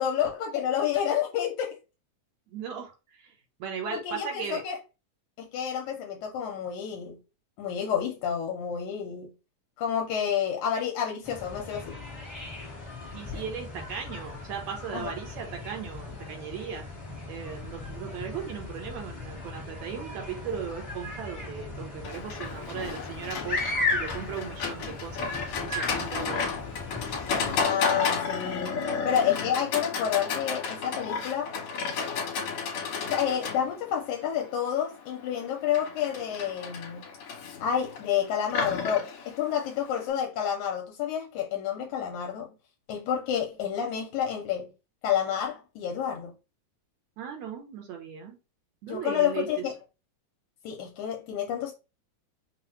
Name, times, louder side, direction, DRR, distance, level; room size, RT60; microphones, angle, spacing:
voice 1, 0.0-1.8 3.9-4.8 5.4-7.2 7.6-9.3 9.8-12.0 13.3-13.4 14.9-15.1 26.2-26.3 27.5-31.5 33.1-37.0 37.6-42.5 42.9-44.7 45.0-46.3 48.9-49.8 50.6-51.7, left 9 dB, 80° left, 2.0 m, -29 dB
voice 2, 2.5-3.3 3.6-4.6 13.1-16.8 17.3-23.7 23.9-25.3 25.6-26.5 47.2-48.4 48.8-49.7, right 7 dB, 70° right, 2.0 m, -37 dB
sound 1, 11.2-27.6, left 2 dB, 20° left, 0.5 m, -37 dB
Livestock farm animals working animals, 22.0-40.1, left 5 dB, 65° left, 2.0 m, -33 dB
5.8 x 2.1 x 3.0 m
omnidirectional pair, 3.5 m